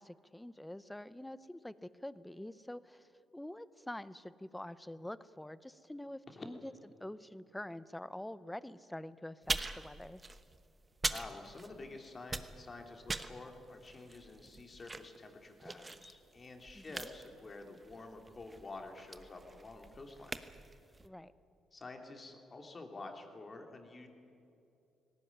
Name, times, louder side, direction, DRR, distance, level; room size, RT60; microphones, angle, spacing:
voice 1, 0.0-3.1 3.3-6.7 7.0-10.2 16.7-17.1 21.0-21.3, left 1 dB, 5° left, 16 dB, 0.7 m, -46 dB
sound 1, 9.4-11.9 12.2-21.1, right 3 dB, 25° right, 1.1 m, -42 dB
voice 2, 11.1-20.3 21.7-24.1, left 3 dB, 35° left, 3 dB, 3.0 m, -49 dB
18.5 x 17.5 x 9.7 m, 2.7 s
cardioid pair, 90°, 0 cm